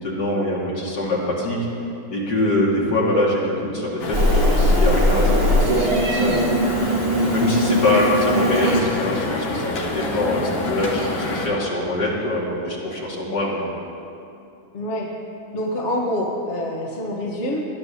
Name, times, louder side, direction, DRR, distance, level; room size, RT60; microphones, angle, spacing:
voice 1, 0.0-1.6 2.1-13.6, left 1 dB, 55° left, -4 dB, 2.6 m, -24 dB
sound 1, 4.0-11.5, left 2 dB, 70° left, 2.0 m, -28 dB
Meow, 4.1-8.8, equal, 35° right, 1.3 m, -19 dB
voice 2, 14.7-15.1 15.5-17.6, left 1 dB, 40° left, -3 dB, 1.3 m, -26 dB
19.5 x 11.5 x 2.8 m, 2.7 s
omnidirectional pair, 2.2 m